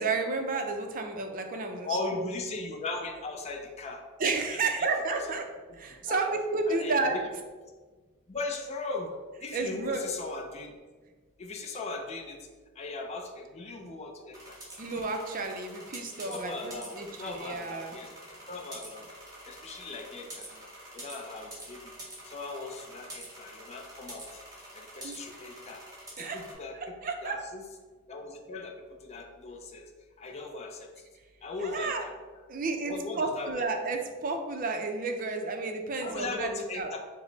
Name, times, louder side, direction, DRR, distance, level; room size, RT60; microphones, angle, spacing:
voice 1, 0.0-2.3 4.2-5.4 5.8-7.2 9.5-10.1 14.8-18.0 25.0-25.4 26.2-26.4 26.7-27.4 31.6-32.1 32.5-36.9, right 3 dB, 40° right, 4 dB, 0.4 m, -32 dB
voice 2, 1.8-4.0 4.5-4.6 5.1-5.4 6.0-6.4 6.7-7.2 8.3-9.1 9.4-10.7 11.4-12.4 12.8-14.4 16.2-16.9 17.2-18.1 18.5-19.1 19.5-20.7 20.9-21.9 22.3-24.3 24.7-25.8 26.3-26.7 27.2-27.6 28.1-28.7 29.0-29.8 30.2-30.9 31.4-32.1 32.8-33.6 36.0-37.0, left 3 dB, 30° left, 2 dB, 0.4 m, -38 dB
sound 1, 14.3-26.5, right 1 dB, 15° right, 1.1 m, -47 dB
5.0 x 2.0 x 3.9 m, 1.4 s
head